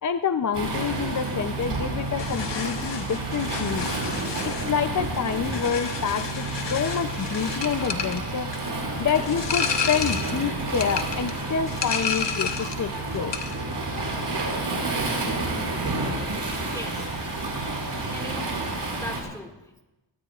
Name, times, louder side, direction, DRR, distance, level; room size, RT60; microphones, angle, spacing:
voice 1, 0.0-3.9 4.4-8.5 9.0-13.4, left 7 dB, 40° left, 9 dB, 0.5 m, -27 dB
Waves surf, 0.5-19.2, right 2 dB, 60° right, 4.7 m, -30 dB
sound 1, 2.2-12.9 13.1-13.6, left 6 dB, 65° left, 1.2 m, -32 dB
voice 2, 8.6-9.1 13.3-13.6 16.7-17.1 18.1-19.8, left 1 dB, 5° left, 3 dB, 2.0 m, -41 dB
23.0 x 17.0 x 2.4 m, 1.0 s
wide cardioid pair, 115°, 46 cm